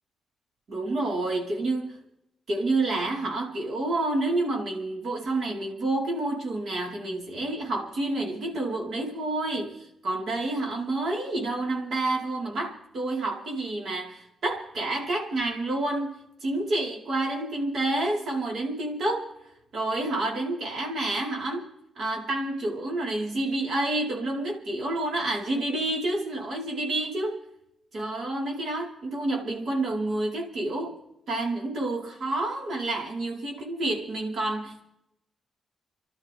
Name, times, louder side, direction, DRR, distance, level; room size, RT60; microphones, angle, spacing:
voice 1, 0.7-2.0 2.5-19.3 19.7-21.6 21.9-27.4 27.9-31.0 31.3-34.8, right 2 dB, 55° right, -1 dB, 4.8 m, -29 dB
30.0 x 12.5 x 3.7 m, 0.82 s
cardioid pair, 125°, 0 cm